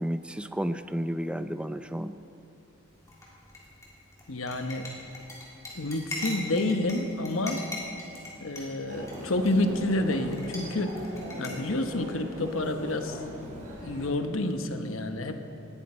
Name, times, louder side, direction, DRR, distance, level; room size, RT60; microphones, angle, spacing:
voice 1, 0.0-2.1, equal, 5° right, 11 dB, 0.4 m, -32 dB
sound 1, 2.9-11.5, left 2 dB, 15° left, 3.1 m, -42 dB
voice 2, 4.3-4.9 5.7-7.6 8.4-11.0 11.4-13.2 13.8-15.4, left 2 dB, 75° left, 7 dB, 1.0 m, -29 dB
Human voice, 8.9-14.1, equal, 40° right, 3.9 m, -40 dB
19.5 x 13.5 x 4.4 m, 2.8 s
head